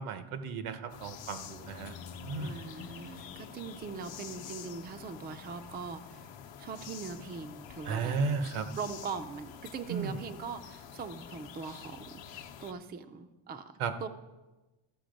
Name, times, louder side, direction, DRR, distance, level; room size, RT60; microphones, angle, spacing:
voice 1, 0.0-2.0 2.2-2.6 7.8-8.7 9.9-10.2 13.8-14.0, right 5 dB, 85° right, 9 dB, 1.0 m, -34 dB
sound 1, 0.9-12.7, left 8 dB, 65° left, 0.8 m, -48 dB
sound 2, 1.3-5.8, left 5 dB, 35° left, 0.5 m, -51 dB
voice 2, 2.4-6.3 6.6-8.1 8.8-13.6 14.0-14.1, right 5 dB, 25° right, 9 dB, 0.3 m, -41 dB
14.0 x 6.0 x 5.1 m, 1.1 s
cardioid pair, 165°, 48 cm